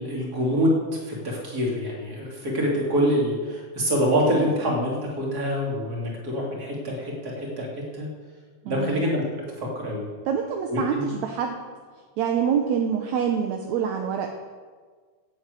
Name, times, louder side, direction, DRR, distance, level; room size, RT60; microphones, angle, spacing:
voice 1, 0.0-7.7 7.9-8.1 8.7-9.2 9.6-10.0 10.7-11.1, equal, 30° right, -3 dB, 3.2 m, -25 dB
voice 2, 8.6-9.0 10.3-11.6 12.2-14.3, right 7 dB, 70° right, 4 dB, 2.0 m, -26 dB
11.0 x 8.5 x 8.2 m, 1.5 s
omnidirectional pair, 3.6 m